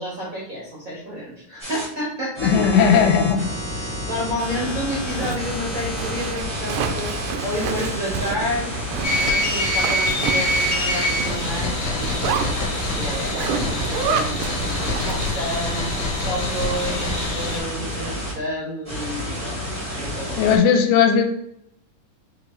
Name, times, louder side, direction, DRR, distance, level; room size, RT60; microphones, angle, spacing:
voice 1, 0.0-2.5 3.7-8.8 9.2-12.5 12.9-19.6 19.9-20.4, equal, 70° right, -5 dB, 0.8 m, -30 dB
sound 1, 1.6-1.8 2.3-18.3 18.8-20.6, equal, 45° right, 0.4 m, -30 dB
voice 2, 2.4-3.5 20.4-21.2, left 6 dB, 80° left, 4 dB, 2.0 m, -17 dB
Zipper (clothing), 4.3-15.5, right 5 dB, 85° right, 2.1 m, -30 dB
sound 2, 9.0-17.6, left 1 dB, 60° left, 1.8 m, -25 dB
5.6 x 2.6 x 3.0 m, 0.73 s
omnidirectional pair, 3.6 m